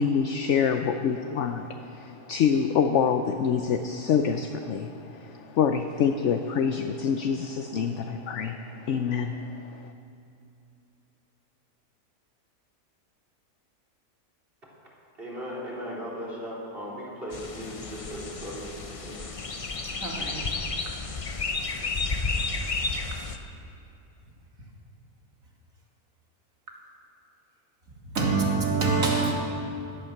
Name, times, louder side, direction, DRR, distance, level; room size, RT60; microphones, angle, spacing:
voice 1, 0.0-9.9, left 7 dB, 60° left, 7 dB, 0.9 m, -26 dB
voice 2, 15.2-19.2, equal, 40° right, -5 dB, 3.8 m, -37 dB
sound 1, 17.3-23.4, left 3 dB, 35° left, 0.6 m, -32 dB
voice 3, 20.0-20.5 28.1-29.3, right 4 dB, 65° right, -1 dB, 2.6 m, -25 dB
16.5 x 12.0 x 6.5 m, 2.7 s
omnidirectional pair, 1.5 m